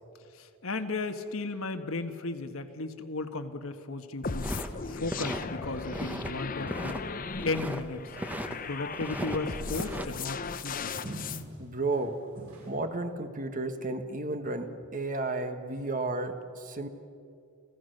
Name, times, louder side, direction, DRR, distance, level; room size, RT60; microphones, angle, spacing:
voice 1, 0.4-4.5 4.9-7.0 7.4-8.1 8.7-10.9, left 3 dB, 65° left, 7 dB, 1.4 m, -35 dB
sound 1, 4.2-11.4, left 4 dB, 40° left, 0.7 m, -37 dB
sound 2, 4.4-5.4 5.8-6.3 6.6-7.8 8.1-8.5 8.9-10.1, equal, 5° right, 1.1 m, -37 dB
sound 3, 8.3-8.9 9.6-10.4 11.0-11.6 11.9-12.0 12.3-12.7, right 1 dB, 75° right, 7.3 m, -43 dB
voice 2, 11.6-12.2 12.7-16.9, right 2 dB, 35° right, 8 dB, 1.3 m, -33 dB
30.0 x 16.0 x 6.6 m, 2.4 s
head